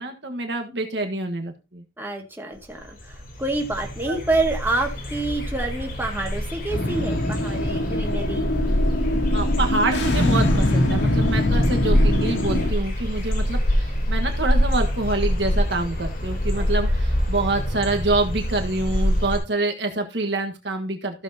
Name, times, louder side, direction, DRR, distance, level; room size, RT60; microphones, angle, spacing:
voice 1, 0.0-1.8 4.1-4.2 9.3-21.2, right 2 dB, 70° right, 4 dB, 1.5 m, -26 dB
voice 2, 2.0-8.5 16.6-16.7, right 2 dB, 10° right, 1 dB, 2.1 m, -28 dB
sound 1, 2.6-2.7 2.8-19.4, equal, 50° left, 3.4 m, -25 dB
sound 2, 6.7-12.7, left 1 dB, 90° left, 2.3 m, -23 dB
15.0 x 7.2 x 2.8 m, 0.28 s
head